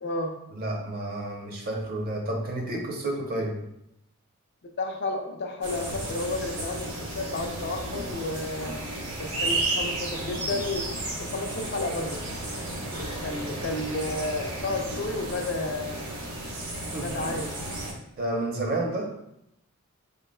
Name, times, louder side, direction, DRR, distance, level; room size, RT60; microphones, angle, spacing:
voice 1, 0.0-0.3 3.3-3.4 4.8-8.7 9.2-10.9 11.2-12.2 13.2-16.0 16.9-17.5, left 2 dB, 50° left, 4 dB, 0.4 m, -32 dB
voice 2, 0.5-3.5 16.9-17.1 18.2-19.1, right 1 dB, 45° right, 0 dB, 0.7 m, -30 dB
sound 1, 5.6-17.9, right 1 dB, 90° right, 0.9 m, -33 dB
3.9 x 3.7 x 2.2 m, 0.81 s
head